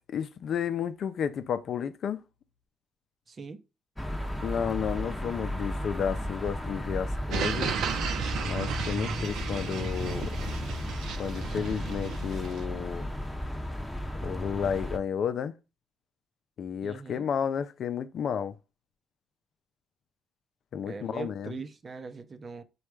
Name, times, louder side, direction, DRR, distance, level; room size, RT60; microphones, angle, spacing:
voice 1, 0.1-2.2 4.4-7.7 8.4-10.4 11.2-13.1 14.2-15.5 16.6-18.5 20.7-21.6, left 7 dB, 65° left, 0.5 m, -32 dB
voice 2, 3.3-3.6 16.8-17.2 20.9-22.6, right 4 dB, 40° right, 0.6 m, -41 dB
sound 1, 4.0-15.0, left 1 dB, 5° left, 0.7 m, -34 dB
sound 2, 7.3-12.7, right 6 dB, 80° right, 0.6 m, -34 dB
4.3 x 2.3 x 4.8 m
cardioid pair, 90°, 0 cm